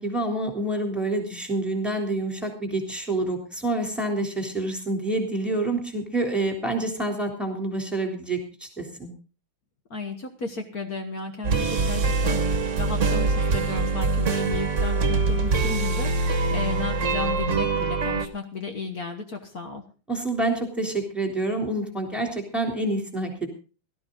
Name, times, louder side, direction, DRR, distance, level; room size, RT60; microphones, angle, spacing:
voice 1, 0.0-9.1 20.1-23.5, right 2 dB, ahead, 3 dB, 3.3 m, -27 dB
voice 2, 9.9-19.8, left 4 dB, 50° left, 5 dB, 1.7 m, -34 dB
sound 1, 11.4-18.3, right 3 dB, 40° right, 1.5 m, -24 dB
17.5 x 12.5 x 3.9 m, 0.36 s
omnidirectional pair, 2.2 m